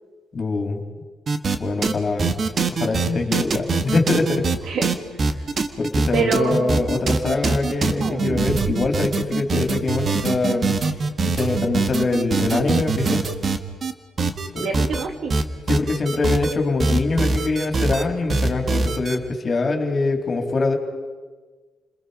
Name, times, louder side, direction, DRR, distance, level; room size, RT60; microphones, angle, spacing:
voice 1, 0.3-0.8 1.6-2.3 2.7-4.5 5.8-10.7 11.2-13.3 14.5-14.7 15.7-20.7, left 3 dB, 40° left, 3 dB, 3.7 m, -23 dB
sound 1, 1.3-1.6 1.8-1.9 2.2-4.6 4.8-13.9 14.2-15.0 15.3-16.5 16.8-18.0 18.3-19.2, right 4 dB, 45° right, 1.6 m, -22 dB
voice 2, 4.7-5.0 6.1-6.8 14.6-15.4, right 5 dB, 70° right, 5 dB, 2.5 m, -25 dB
30.0 x 21.0 x 5.2 m, 1.4 s
cardioid pair, 90°, 0 cm